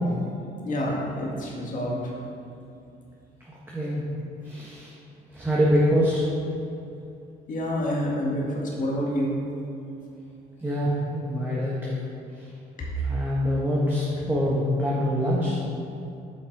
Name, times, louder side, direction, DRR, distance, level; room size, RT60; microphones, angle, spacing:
voice 1, 0.6-2.1 7.5-9.3 11.7-11.9, equal, 50° left, -3 dB, 2.0 m, -28 dB
voice 2, 4.4-4.9 5.3-6.2 10.6-11.7 13.0-15.6, equal, 10° right, -6 dB, 1.4 m, -24 dB
8.6 x 5.5 x 4.8 m, 2.6 s
cardioid pair, 100°, 17 cm